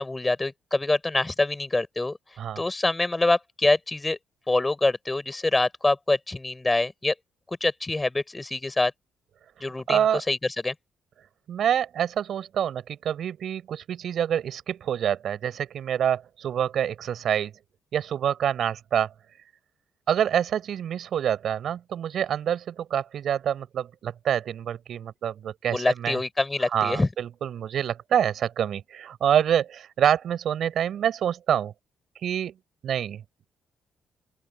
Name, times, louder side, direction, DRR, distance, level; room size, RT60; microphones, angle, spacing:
voice 1, 0.0-2.2 2.6-4.2 4.5-7.1 7.5-8.9 9.6-10.4 10.6-10.7 25.7-27.1, left 2 dB, 15° left, 5.4 m, -25 dB
voice 2, 9.9-10.2 11.5-17.5 17.9-19.1 20.1-26.2 26.7-31.7 32.2-32.5 32.8-33.2, right 9 dB, 65° right, 5.1 m, -26 dB
open air
cardioid pair, 90°, 0 cm